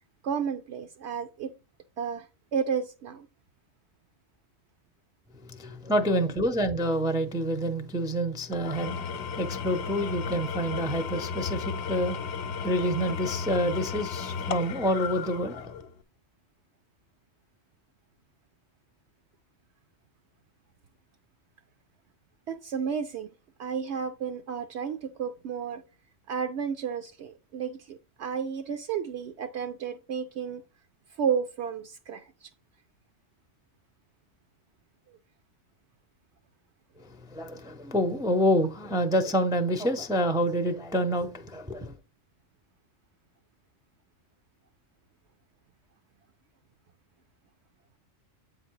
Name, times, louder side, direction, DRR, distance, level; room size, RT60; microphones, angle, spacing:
voice 1, 0.2-1.5 2.0-2.3 2.5-3.3 22.5-23.3 23.6-25.8 26.3-30.6 31.2-32.5, right 7 dB, 70° right, 0.8 m, -32 dB
voice 2, 5.4-12.3 12.6-15.7 37.0-41.9, equal, 5° right, 0.4 m, -28 dB
Engine / Tools, 8.5-16.0, left 6 dB, 70° left, 0.9 m, -34 dB
8.2 x 3.9 x 4.6 m
omnidirectional pair, 1.2 m